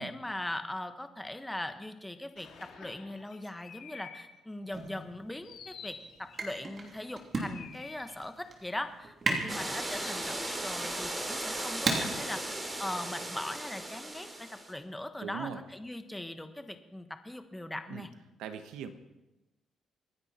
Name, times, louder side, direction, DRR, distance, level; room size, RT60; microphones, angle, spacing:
voice 1, 0.0-12.4 12.8-18.1, left 1 dB, 10° left, 8 dB, 1.3 m, -40 dB
sound 1, 2.4-4.2 4.7-4.9 5.4-6.6 7.3-8.3 9.6-10.6 11.6-12.1, left 6 dB, 75° left, 2.3 m, -50 dB
sound 2, 4.7-13.5, right 3 dB, 40° right, 3.0 m, -38 dB
sound 3, 9.5-14.7, right 1 dB, 20° right, 3.0 m, -37 dB
voice 2, 15.2-15.6 17.9-18.1 18.4-18.9, right 7 dB, 90° right, 9 dB, 1.2 m, -40 dB
25.5 x 10.0 x 4.4 m, 1.0 s
cardioid pair, 90°, 0 cm